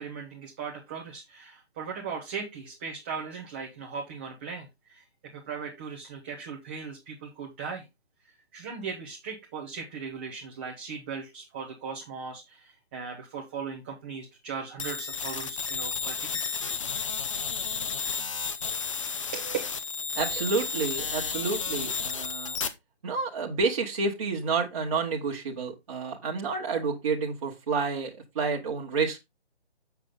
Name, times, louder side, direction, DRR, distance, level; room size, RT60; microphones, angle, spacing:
voice 1, 0.0-5.0 5.3-7.8 8.5-16.3 18.7-18.8 19.3-19.6, right 6 dB, 10° right, -1 dB, 0.7 m, -38 dB
sound 1, 14.8-22.7, left 5 dB, 30° left, 0.7 m, -32 dB
voice 2, 20.1-22.6 23.0-29.2, right 4 dB, 30° right, -2 dB, 1.4 m, -29 dB
7.3 x 7.0 x 3.8 m, 0.21 s
figure-of-eight pair, 145°, 32 cm